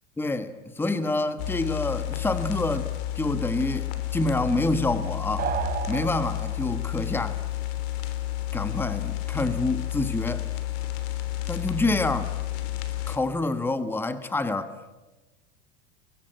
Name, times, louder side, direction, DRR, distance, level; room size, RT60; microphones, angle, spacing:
voice 1, 0.2-2.9 3.1-5.5 5.9-7.4 8.5-10.5 11.5-12.3 13.1-14.7, left 2 dB, 5° left, 1.3 m, -27 dB
sound 1, 1.4-13.2, left 14 dB, 60° left, 3.3 m, -31 dB
sound 2, 5.4-6.9, right 8 dB, 25° right, 1.4 m, -32 dB
29.5 x 23.5 x 7.7 m
supercardioid pair, 135°, 35 cm